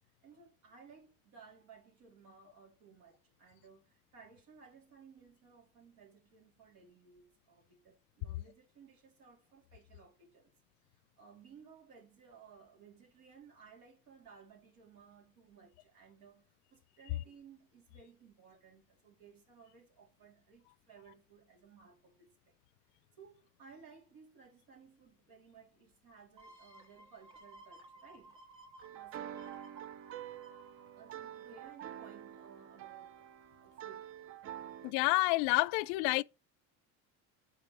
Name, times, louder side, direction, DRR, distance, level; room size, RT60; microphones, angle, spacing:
voice 1, 0.2-10.5 11.2-22.3 23.2-28.4 28.9-29.5 30.8-33.3 33.6-34.2, right 6 dB, 85° right, 3.4 m, -59 dB
sound 1, 26.4-31.9 32.3-32.4, right 2 dB, 15° right, 2.5 m, -58 dB
sound 2, 28.8-34.9, right 11 dB, 40° right, 0.4 m, -47 dB
voice 2, 34.8-36.2, left 23 dB, 80° left, 0.5 m, -29 dB
8.3 x 5.4 x 3.3 m
cardioid pair, 110°, 35 cm